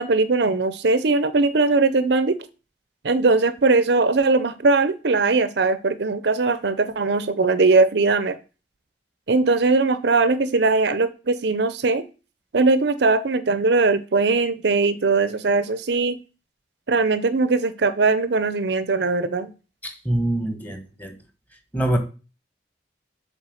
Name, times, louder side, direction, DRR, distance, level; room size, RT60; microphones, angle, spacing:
voice 1, 0.0-2.4 3.0-8.4 9.3-12.0 12.5-16.2 16.9-19.5, right 3 dB, 65° right, 0.6 m, -20 dB
voice 2, 19.8-21.2 21.7-22.0, right 1 dB, 10° left, 1.6 m, -24 dB
7.3 x 4.7 x 6.3 m
head